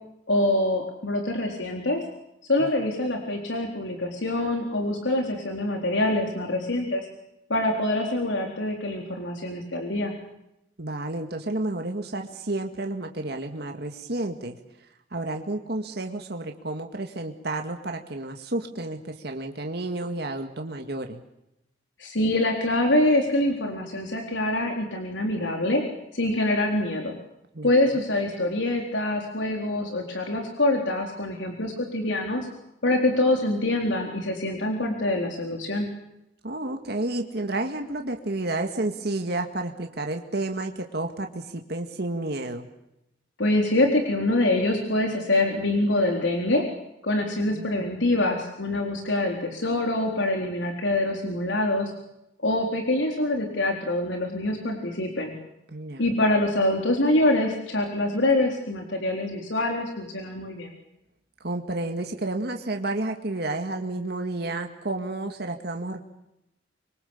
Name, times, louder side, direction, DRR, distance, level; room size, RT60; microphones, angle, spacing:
voice 1, 0.3-2.0 2.5-7.1 7.5-10.1 22.0-25.8 26.1-27.1 27.6-32.5 32.8-35.9 43.4-46.6 47.0-51.9 52.4-55.3 56.0-60.7, left 1 dB, 80° left, 2 dB, 4.0 m, -25 dB
voice 2, 10.8-14.6 15.1-21.2 27.5-27.9 36.4-42.7 47.5-47.9 55.7-56.2 61.4-66.0, right 2 dB, 60° right, 4 dB, 2.1 m, -31 dB
26.5 x 24.0 x 7.3 m, 0.86 s
head